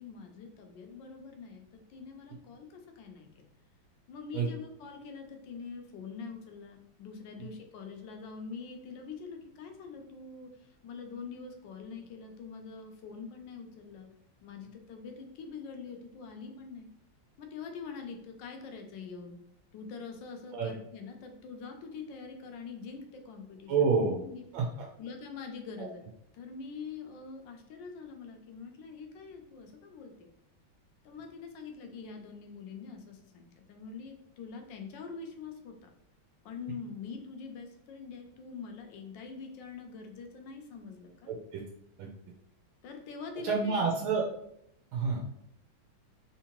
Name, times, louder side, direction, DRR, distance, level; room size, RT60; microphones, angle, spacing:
voice 1, 0.0-1.6 1.9-3.4 4.1-14.1 14.4-16.9 17.4-19.4 19.7-24.4 25.0-26.1 26.3-30.3 31.0-35.9 36.4-41.3 42.8-43.9, left 5 dB, 75° left, 4 dB, 1.2 m, -44 dB
voice 2, 23.7-24.2 24.5-24.8 41.3-41.6 42.0-42.1 43.4-44.3 44.9-45.2, right 5 dB, 85° right, -1 dB, 1.4 m, -28 dB
3.6 x 2.8 x 2.9 m, 0.76 s
omnidirectional pair, 2.2 m